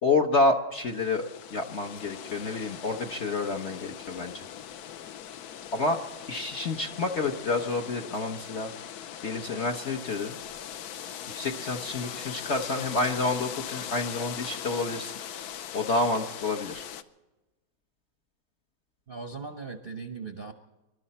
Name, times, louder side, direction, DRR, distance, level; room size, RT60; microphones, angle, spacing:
voice 1, 0.0-4.3 5.7-6.0 6.3-8.7 9.2-10.3 11.3-15.1 15.7-16.8, left 3 dB, 50° left, 3 dB, 0.9 m, -28 dB
sound 1, 0.8-17.0, left 9 dB, 65° left, 1.0 m, -40 dB
voice 2, 19.1-20.5, right 4 dB, 45° right, 5 dB, 0.7 m, -38 dB
25.0 x 12.5 x 4.2 m, 1.1 s
omnidirectional pair, 2.1 m